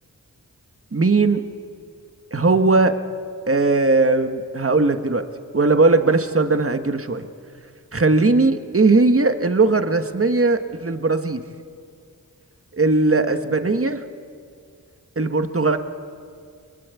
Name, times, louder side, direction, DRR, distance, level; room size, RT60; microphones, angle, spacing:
voice 1, 0.9-1.4 2.3-3.0 3.5-5.3 5.5-7.3 7.9-11.4 12.7-14.0 15.2-15.8, right 3 dB, 40° right, 8 dB, 1.6 m, -18 dB
29.0 x 23.5 x 8.4 m, 2.2 s
wide cardioid pair, 55°, 34 cm